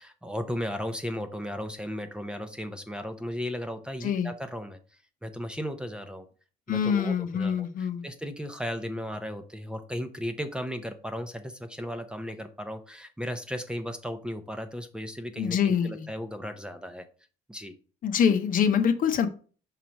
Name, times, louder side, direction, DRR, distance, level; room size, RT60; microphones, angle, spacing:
voice 1, 0.0-4.8 5.2-6.2 6.7-7.5 8.0-17.1 17.5-17.8, equal, 5° right, 8 dB, 0.7 m, -35 dB
voice 2, 4.0-4.3 6.7-8.1 15.4-16.1 18.0-19.3, left 7 dB, 55° left, 8 dB, 0.8 m, -25 dB
5.8 x 3.1 x 5.1 m, 0.38 s
cardioid pair, 110°, 17 cm